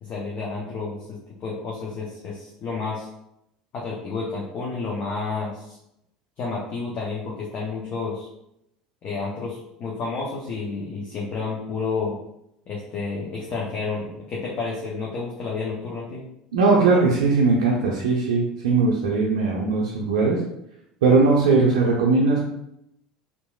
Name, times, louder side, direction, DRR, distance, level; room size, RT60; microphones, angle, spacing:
voice 1, 0.0-3.1 3.7-5.8 6.4-8.3 9.0-12.2 12.7-16.2, left 4 dB, 45° left, -4 dB, 0.6 m, -30 dB
voice 2, 16.5-20.4 21.0-22.4, right 3 dB, 75° right, -3 dB, 0.5 m, -19 dB
2.9 x 2.5 x 2.3 m, 0.79 s
hypercardioid pair, 75°, 4 cm